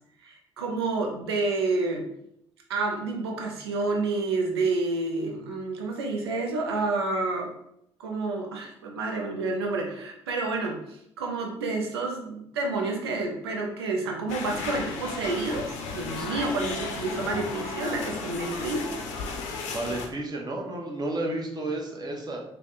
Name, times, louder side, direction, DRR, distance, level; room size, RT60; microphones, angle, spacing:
voice 1, 0.2-2.0 2.7-7.5 8.0-15.6 15.9-18.8, right 3 dB, 90° right, 1 dB, 0.4 m, -29 dB
sound 1, 14.3-20.1, left 4 dB, 70° left, 0.5 m, -34 dB
voice 2, 19.7-22.4, right 2 dB, 30° right, 0 dB, 0.9 m, -32 dB
3.3 x 2.2 x 3.8 m, 0.75 s
hypercardioid pair, 45°, 13 cm